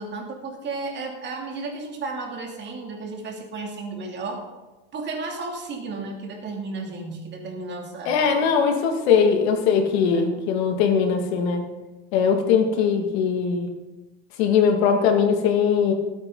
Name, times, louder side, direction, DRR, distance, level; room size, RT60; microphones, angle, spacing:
voice 1, 0.0-4.4 4.9-8.2 10.1-10.3, right 3 dB, 30° right, 1 dB, 2.7 m, -33 dB
voice 2, 8.1-11.6 12.1-13.7 14.4-15.9, left 6 dB, 70° left, 4 dB, 2.2 m, -20 dB
19.0 x 9.0 x 3.9 m, 1.1 s
supercardioid pair, 130°, 33 cm